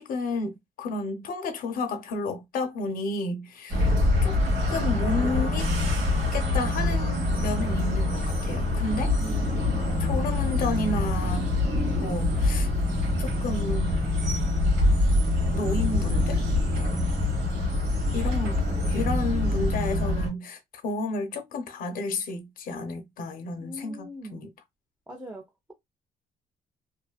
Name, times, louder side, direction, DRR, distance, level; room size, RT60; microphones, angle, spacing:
voice 1, 0.0-4.4 4.7-5.7 6.3-9.1 10.0-11.5 12.0-12.7 13.2-14.1 15.5-16.4 18.1-18.6 18.9-24.5, left 3 dB, 60° left, 0.6 m, -31 dB
sound 1, 3.7-20.3, left 2 dB, 85° right, 1.1 m, -25 dB
voice 2, 23.6-24.4 25.1-25.4, right 1 dB, 10° right, 0.5 m, -40 dB
2.5 x 2.3 x 2.2 m
cardioid pair, 95°, 16 cm